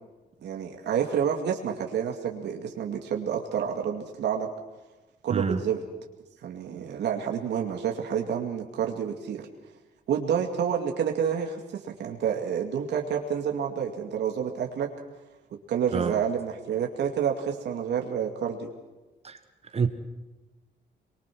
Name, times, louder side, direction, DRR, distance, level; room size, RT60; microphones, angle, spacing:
voice 1, 0.4-4.5 5.2-5.8 6.4-9.5 10.1-14.9 15.7-18.7, right 8 dB, 80° right, 2 dB, 2.3 m, -29 dB
voice 2, 5.3-5.7 15.9-16.2 19.2-19.4 19.7-19.9, right 5 dB, 35° right, 9 dB, 1.4 m, -27 dB
23.5 x 23.0 x 6.2 m, 1.1 s
cardioid pair, 120°, 18 cm